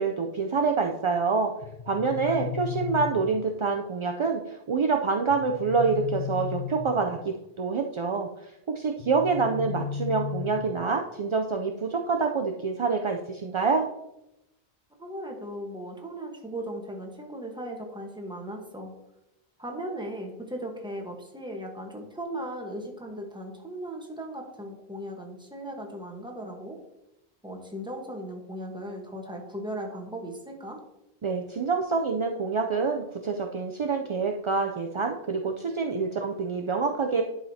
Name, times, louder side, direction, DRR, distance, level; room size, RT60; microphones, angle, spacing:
voice 1, 0.0-1.5 1.9-8.3 8.7-13.9 31.2-37.2, right 4 dB, 50° right, 2 dB, 0.3 m, -26 dB
sound 1, 1.6-3.6 5.3-7.3 9.0-11.0, left 8 dB, 55° left, 0.7 m, -35 dB
voice 2, 15.0-18.9 19.6-26.8 27.4-30.8, right 1 dB, 5° right, 1 dB, 1.1 m, -37 dB
11.0 x 4.9 x 2.7 m, 0.88 s
omnidirectional pair, 1.0 m